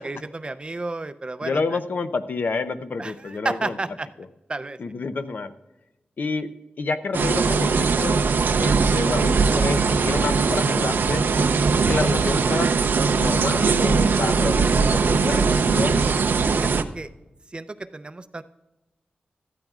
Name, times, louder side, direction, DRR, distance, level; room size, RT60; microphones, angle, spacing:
voice 1, 0.0-1.6 3.0-4.1 4.5-4.8 16.5-17.1 17.5-18.4, right 2 dB, 30° right, 12 dB, 0.5 m, -32 dB
voice 2, 1.4-3.8 4.8-5.5 6.2-6.5 6.8-8.2 8.6-11.3 11.8-12.7 13.1-16.1, left 4 dB, 65° left, 10 dB, 0.6 m, -29 dB
sound 1, 7.1-16.8, right 4 dB, 85° right, 0.5 m, -20 dB
17.5 x 13.0 x 2.4 m, 1.0 s
wide cardioid pair, 105°, 3 cm